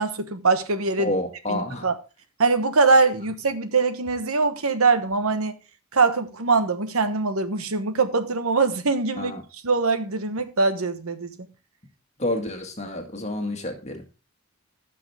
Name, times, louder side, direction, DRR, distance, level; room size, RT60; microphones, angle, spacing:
voice 1, 0.0-1.1 1.5-1.9 2.4-5.5 5.9-9.3 9.6-11.3, right 4 dB, 90° right, 1.2 m, -22 dB
voice 2, 1.0-1.9 9.2-9.4 12.2-14.0, left 1 dB, 30° left, 1.9 m, -29 dB
15.5 x 6.1 x 3.4 m
head